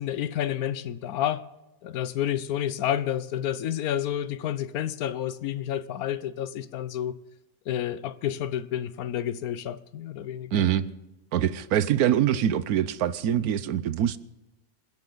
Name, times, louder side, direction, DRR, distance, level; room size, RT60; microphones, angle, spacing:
voice 1, 0.0-1.4 1.8-7.2 7.7-10.6, left 11 dB, 85° left, 1.2 m, -30 dB
voice 2, 10.5-10.9 11.3-14.2, right 10 dB, 90° right, 1.2 m, -24 dB
27.5 x 10.5 x 3.9 m
omnidirectional pair, 1.5 m